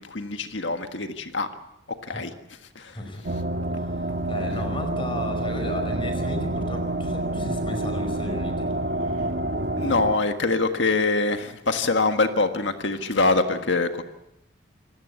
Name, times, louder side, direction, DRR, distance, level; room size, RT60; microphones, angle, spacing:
voice 1, 0.0-1.5 2.0-2.3 2.8-3.0 9.8-14.0, left 3 dB, 70° left, 7 dB, 1.7 m, -24 dB
voice 2, 2.9-3.2 3.8-4.0 4.3-8.7, left 1 dB, 25° left, 6 dB, 5.0 m, -34 dB
sound 1, 3.2-10.1, right 1 dB, 55° right, 1.6 m, -28 dB
27.0 x 17.5 x 8.2 m, 0.86 s
head